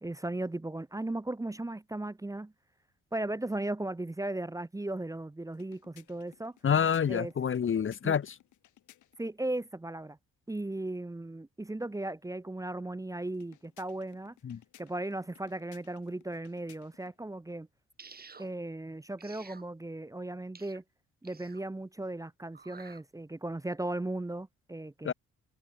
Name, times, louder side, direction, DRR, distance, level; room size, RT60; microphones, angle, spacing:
voice 1, 0.0-2.5 3.1-6.5 7.1-7.3 8.0-8.2 9.2-10.2 10.5-14.3 14.8-17.7 18.4-20.8 21.2-25.1, right 2 dB, 10° right, 1.1 m, -36 dB
sound 1, 5.5-9.4 13.3-17.2, left 13 dB, 80° left, 7.5 m, -61 dB
voice 2, 6.6-8.3 14.4-14.6 25.0-25.1, left 7 dB, 40° left, 1.3 m, -28 dB
sound 2, 18.0-18.5 19.2-19.7 20.5-20.8 21.2-21.7 22.5-23.0, right 5 dB, 30° right, 2.9 m, -51 dB
cardioid pair, 90°, 30 cm